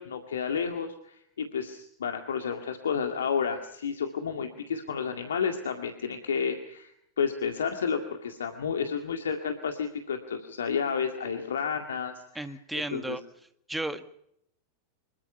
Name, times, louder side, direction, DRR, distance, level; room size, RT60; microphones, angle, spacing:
voice 1, 0.0-12.6 12.9-13.2, left 6 dB, 65° left, 5 dB, 2.0 m, -31 dB
voice 2, 12.3-13.2 13.7-14.1, right 2 dB, 5° right, 9 dB, 1.8 m, -33 dB
25.5 x 22.5 x 5.6 m, 0.75 s
figure-of-eight pair, 90°, 0 cm